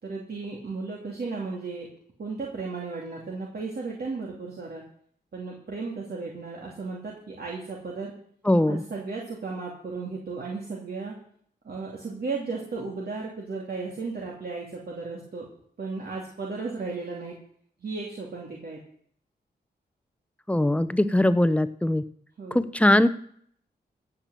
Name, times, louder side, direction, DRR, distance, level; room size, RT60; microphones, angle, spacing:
voice 1, 0.0-1.9 2.2-4.8 5.3-8.1 8.7-11.1 11.6-15.5 15.8-17.3 17.8-18.8 22.4-22.6, right 4 dB, 60° right, -2 dB, 2.8 m, -35 dB
voice 2, 8.4-8.8 20.5-22.0 22.5-23.1, left 1 dB, 5° left, 13 dB, 0.9 m, -21 dB
16.0 x 6.0 x 7.5 m, 0.62 s
cardioid pair, 70°, 18 cm